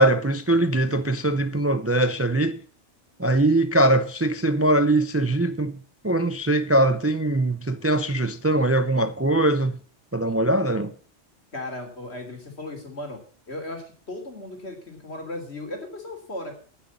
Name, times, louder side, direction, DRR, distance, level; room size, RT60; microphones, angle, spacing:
voice 1, 0.0-2.6 3.2-5.8 6.0-9.8 10.1-10.9, right 1 dB, 15° right, 0.5 m, -21 dB
voice 2, 11.5-13.2 13.5-16.5, left 1 dB, 65° left, 3.6 m, -36 dB
10.5 x 9.8 x 7.1 m
omnidirectional pair, 1.2 m